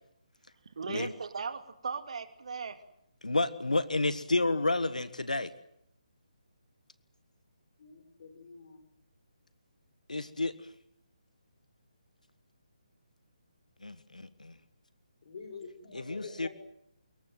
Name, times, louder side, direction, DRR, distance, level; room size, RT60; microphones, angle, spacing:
voice 1, 0.8-2.8, right 5 dB, 55° right, 9 dB, 2.6 m, -37 dB
voice 2, 3.2-5.5 10.1-10.5 13.8-14.5 15.9-16.5, left 2 dB, 85° left, 14 dB, 1.5 m, -30 dB
voice 3, 7.8-8.8 15.3-16.5, left 5 dB, 50° left, 8 dB, 5.8 m, -46 dB
25.5 x 22.5 x 7.7 m, 0.77 s
figure-of-eight pair, 150°, 4 cm